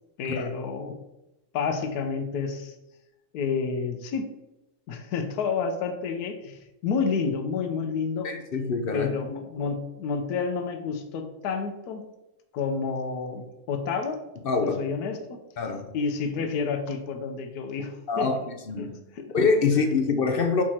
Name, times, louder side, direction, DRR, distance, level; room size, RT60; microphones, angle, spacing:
voice 1, 0.2-0.9 1.5-2.8 3.3-4.3 4.9-8.3 8.9-12.0 12.5-14.2 14.6-15.4 15.9-18.5 18.8-19.3, left 5 dB, 85° left, 6 dB, 1.2 m, -30 dB
voice 2, 8.2-9.1 14.4-14.8 15.6-15.9 18.1-18.4 18.7-18.9 19.3-20.6, left 4 dB, 60° left, 5 dB, 0.6 m, -24 dB
6.0 x 4.6 x 4.2 m, 0.93 s
omnidirectional pair, 1.6 m